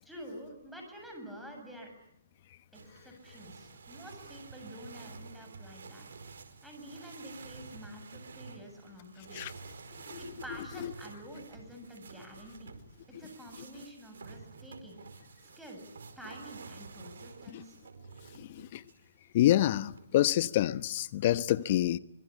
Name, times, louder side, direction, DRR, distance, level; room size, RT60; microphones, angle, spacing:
voice 1, 0.0-1.9 2.7-6.1 6.6-9.4 10.1-12.7 13.2-15.0 15.6-15.8 16.2-17.8, equal, ahead, 7.7 m, -48 dB
sound 1, 2.7-19.1 19.8-20.5, right 4 dB, 75° right, 4.7 m, -50 dB
voice 2, 18.4-18.8 19.3-22.0, left 13 dB, 45° left, 1.1 m, -27 dB
25.5 x 23.5 x 10.0 m
hypercardioid pair, 145°, 0 cm